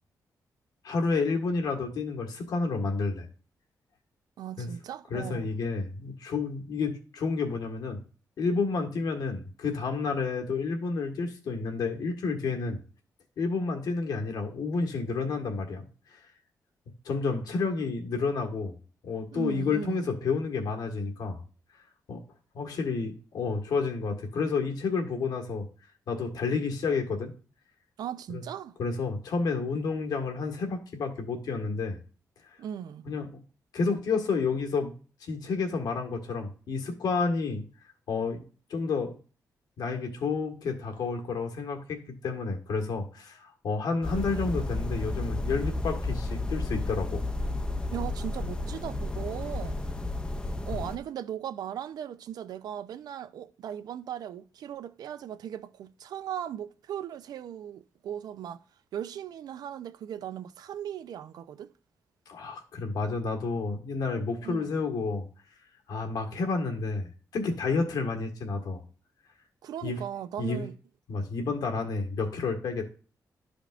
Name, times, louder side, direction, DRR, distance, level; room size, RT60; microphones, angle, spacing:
voice 1, 0.8-3.3 4.6-4.7 5.1-8.0 8.4-12.8 13.4-15.8 16.1-16.2 17.0-18.7 19.0-21.4 22.1-22.2 22.5-25.6 26.1-27.3 28.3-28.4 28.8-32.0 33.0-33.3 33.7-34.9 35.2-37.6 38.1-38.4 38.7-39.2 39.8-47.2 62.3-65.3 65.9-68.8 69.8-70.0 70.4-70.6 71.1-72.9, left 4 dB, 85° left, 1.5 m, -30 dB
voice 2, 4.4-5.5 19.3-20.1 28.0-28.8 32.6-33.1 47.9-50.1 50.6-58.6 58.9-61.7 64.4-64.8 69.6-70.8, right 10 dB, 85° right, 0.5 m, -38 dB
sound 1, 44.0-51.0, left 2 dB, 15° left, 0.5 m, -32 dB
12.0 x 5.1 x 2.5 m
wide cardioid pair, 140°, 7 cm